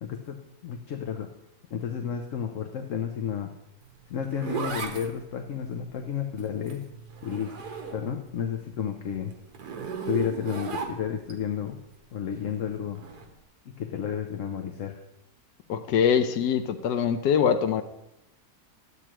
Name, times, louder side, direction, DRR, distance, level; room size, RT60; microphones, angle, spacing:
voice 1, 0.0-1.3 1.7-3.5 4.1-6.9 7.2-7.5 7.9-9.3 10.1-11.8 12.1-13.0 13.7-15.0, left 8 dB, 60° left, 4 dB, 1.0 m, -32 dB
Zipper (clothing), 3.8-8.3 8.7-11.3 12.9-13.3, right 5 dB, 80° right, 1.6 m, -36 dB
voice 2, 15.7-17.8, left 7 dB, 85° left, 8 dB, 1.2 m, -23 dB
12.0 x 8.1 x 3.0 m, 0.86 s
omnidirectional pair, 1.7 m